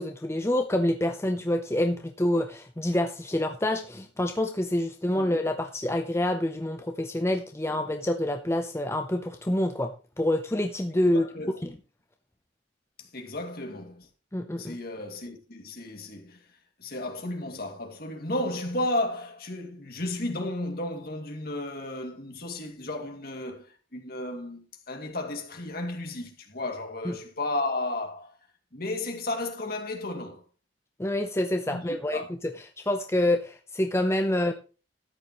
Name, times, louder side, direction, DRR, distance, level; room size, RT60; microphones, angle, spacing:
voice 1, 0.0-9.9 10.2-11.2 11.6-11.8 14.3-14.8 27.0-27.1 31.0-32.2 32.8-34.5, left 1 dB, 15° left, 0.7 m, -27 dB
voice 2, 11.1-11.6 13.0-14.1 14.6-16.4 16.8-28.4 28.7-30.4 31.7-32.3, left 2 dB, 55° left, 2.4 m, -33 dB
13.5 x 9.5 x 3.1 m
head